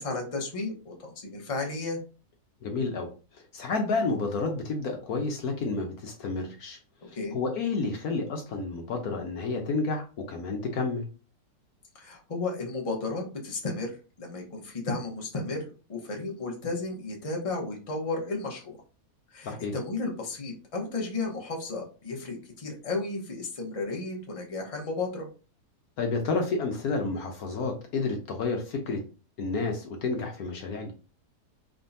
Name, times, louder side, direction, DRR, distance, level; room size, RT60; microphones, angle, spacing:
voice 1, 0.0-2.0 7.1-7.4 11.9-13.9 14.2-18.8 19.3-25.3, left 3 dB, 25° left, 0 dB, 1.0 m, -33 dB
voice 2, 2.6-6.8 7.1-11.0 19.4-19.7 26.0-29.0 29.4-30.9, left 3 dB, 65° left, 3 dB, 1.2 m, -30 dB
4.4 x 3.7 x 2.7 m, 0.33 s
omnidirectional pair, 1.8 m